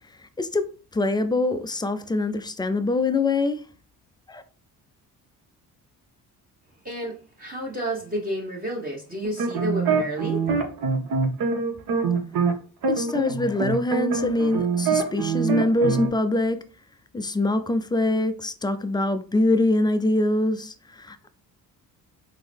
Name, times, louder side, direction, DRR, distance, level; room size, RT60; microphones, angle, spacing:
voice 1, 0.2-3.6 4.3-4.4 12.9-16.6 17.1-21.3, left 2 dB, 10° left, 0.3 m, -24 dB
voice 2, 6.8-10.5, equal, 20° right, 1.1 m, -31 dB
sound 1, 9.2-12.5 12.8-16.1, right 4 dB, 55° right, 0.8 m, -24 dB
3.7 x 2.0 x 3.3 m
hypercardioid pair, 50°, 43 cm